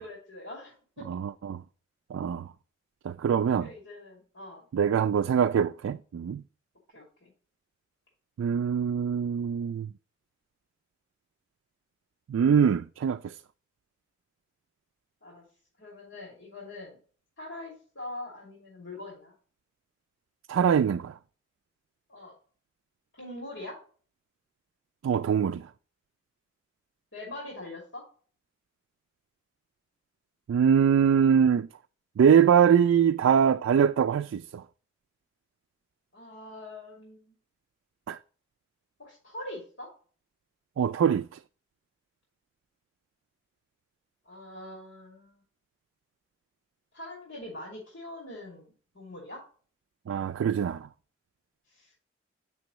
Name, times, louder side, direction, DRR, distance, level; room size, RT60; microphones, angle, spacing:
voice 1, 0.0-1.0 3.6-4.7 6.9-7.3 15.2-15.4 15.8-17.0 17.4-19.3 22.1-22.3 23.1-23.8 27.1-28.0 36.1-37.3 39.0-39.9 44.2-45.4 46.9-49.4 51.7-52.0, left 1 dB, 75° left, 2.5 m, -43 dB
voice 2, 1.1-1.6 2.1-2.5 3.0-3.7 4.7-6.4 8.4-9.9 12.3-13.4 20.5-21.2 25.0-25.7 30.5-31.7 32.2-34.6 38.1-38.2 40.8-41.3 50.1-50.9, right 7 dB, 85° right, 0.3 m, -23 dB
7.6 x 6.1 x 3.0 m
head